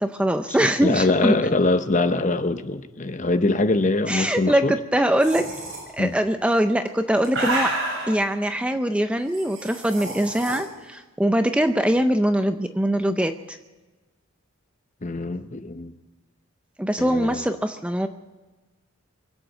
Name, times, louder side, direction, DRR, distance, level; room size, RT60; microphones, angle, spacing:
voice 1, 0.0-1.4 4.1-5.5 6.0-7.8 8.1-13.6 16.8-18.1, right 1 dB, 5° right, 8 dB, 0.5 m, -22 dB
voice 2, 0.6-4.7 6.0-6.1 15.0-15.9 17.0-17.4, left 2 dB, 35° left, 10 dB, 0.7 m, -23 dB
sound 1, 5.2-5.8 6.8-8.2 9.3-10.6, right 2 dB, 60° right, 6.6 m, -29 dB
24.0 x 8.3 x 6.4 m, 1.2 s
head